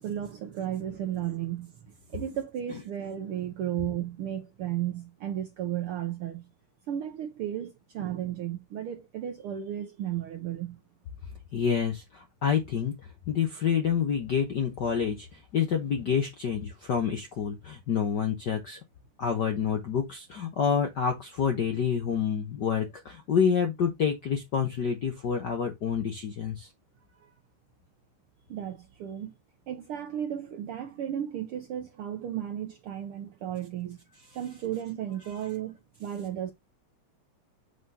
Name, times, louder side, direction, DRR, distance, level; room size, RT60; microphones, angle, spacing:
voice 1, 0.0-1.7 2.1-6.5 6.9-10.8 28.5-29.3 29.7-34.0 34.3-36.5, right 11 dB, 85° right, 1.2 m, -34 dB
voice 2, 11.5-12.9 13.3-18.8 19.2-26.7 35.2-35.4, left 7 dB, 70° left, 1.0 m, -28 dB
7.3 x 5.6 x 2.8 m
omnidirectional pair, 3.4 m